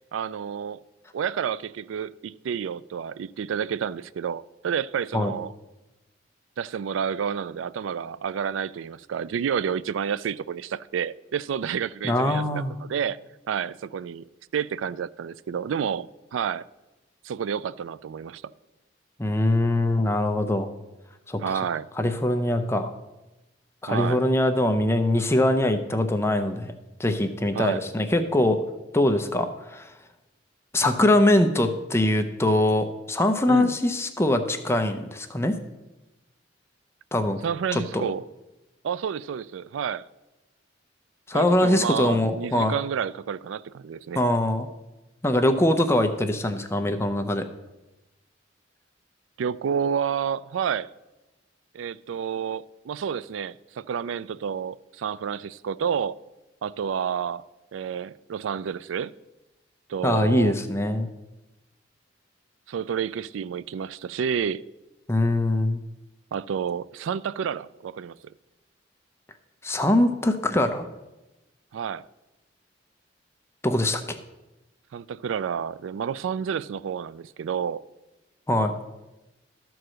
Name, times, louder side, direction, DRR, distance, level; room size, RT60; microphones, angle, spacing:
voice 1, 0.1-0.8 1.1-5.5 6.6-13.2 13.5-14.2 14.5-16.7 17.2-18.4 21.4-21.9 23.9-24.2 27.5-27.8 33.5-33.7 37.4-38.2 38.8-40.0 41.3-44.2 49.4-50.9 51.7-56.2 56.6-57.4 57.7-59.1 59.9-60.6 62.7-64.6 66.3-68.1 71.7-72.0 74.9-77.8, right 7 dB, 90° right, 0.3 m, -30 dB
voice 2, 12.0-12.8 19.2-20.7 21.3-21.6 22.0-22.9 23.8-26.7 27.0-28.6 28.9-29.9 30.7-35.6 37.1-37.4 37.7-38.0 41.3-42.7 44.1-44.7 45.2-47.5 60.0-61.1 65.1-65.8 69.6-70.9 73.6-74.2 78.5-78.7, left 1 dB, 15° left, 0.6 m, -22 dB
13.0 x 4.7 x 6.3 m
head